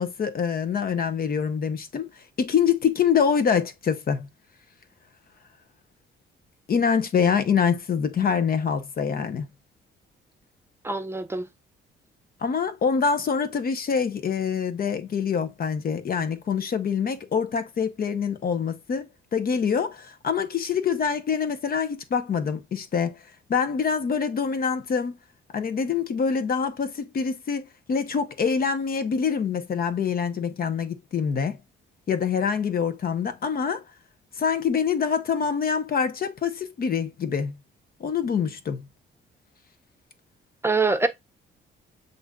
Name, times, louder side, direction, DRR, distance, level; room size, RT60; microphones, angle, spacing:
voice 1, 0.0-2.1 2.4-4.3 6.7-9.5 12.4-19.0 19.3-23.2 23.5-25.2 25.5-31.6 32.1-33.8 34.4-37.6 38.0-38.9, left 6 dB, 50° left, 0.9 m, -25 dB
voice 2, 10.8-11.5 40.6-41.1, right 3 dB, 10° right, 0.7 m, -24 dB
7.8 x 2.6 x 2.3 m
cardioid pair, 90°, 20 cm